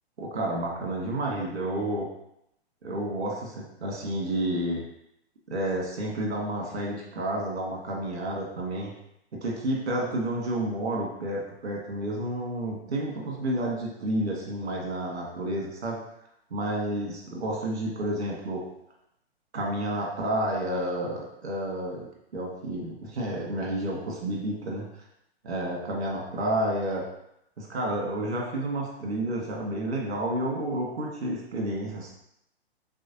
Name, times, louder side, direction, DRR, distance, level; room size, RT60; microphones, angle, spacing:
voice 1, 0.2-2.1 2.8-4.8 5.5-8.9 9.4-16.0 16.5-18.6 19.5-22.0 22.3-24.8 25.4-27.1 27.6-32.1, right 1 dB, 80° right, -2 dB, 1.7 m, -30 dB
5.5 x 3.2 x 2.8 m, 0.78 s
hypercardioid pair, 125°, 32 cm